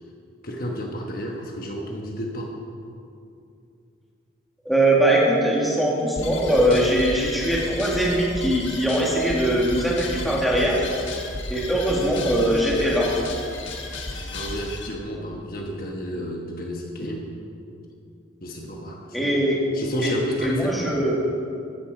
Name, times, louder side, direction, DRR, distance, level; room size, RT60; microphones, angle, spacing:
voice 1, 0.4-2.5 14.3-17.3 18.4-19.4 19.7-21.0, equal, 45° left, 0 dB, 1.2 m, -31 dB
voice 2, 4.7-10.8 11.5-13.1 19.1-19.6 20.0-20.2 20.4-21.2, right 1 dB, ahead, -5 dB, 2.0 m, -21 dB
sound 1, 6.2-14.9, left 2 dB, 80° left, 1.5 m, -33 dB
14.0 x 9.5 x 4.9 m, 2.5 s
head